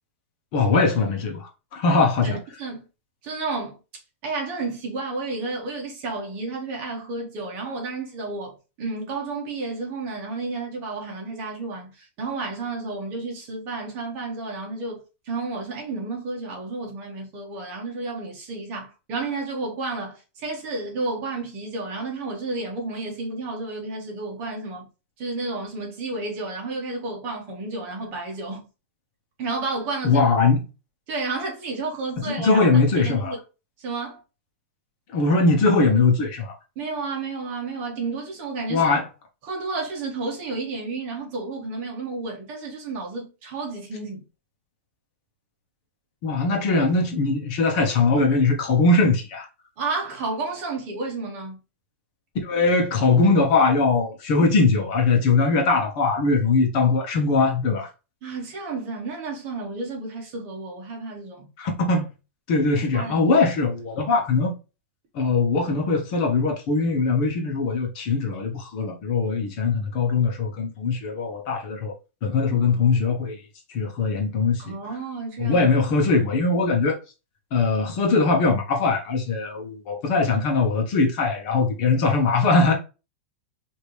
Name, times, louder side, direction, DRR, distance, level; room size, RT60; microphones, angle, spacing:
voice 1, 0.5-2.4 30.0-30.6 32.2-33.3 35.1-36.5 38.7-39.0 46.2-49.5 52.4-57.9 61.6-62.1 62.5-64.5 65.1-71.9 72.2-73.4 73.7-74.7 75.4-77.0 77.5-82.7, left 3 dB, 35° left, 1.1 m, -21 dB
voice 2, 2.2-2.8 3.2-3.8 4.2-24.9 25.2-28.6 29.4-30.2 31.1-33.4 33.8-34.2 36.7-38.9 39.4-44.2 49.8-51.6 58.2-61.5 62.9-63.3 72.5-72.8 74.6-75.7, right 3 dB, 30° right, 1.5 m, -31 dB
5.0 x 2.9 x 3.2 m
supercardioid pair, 175°, 7 cm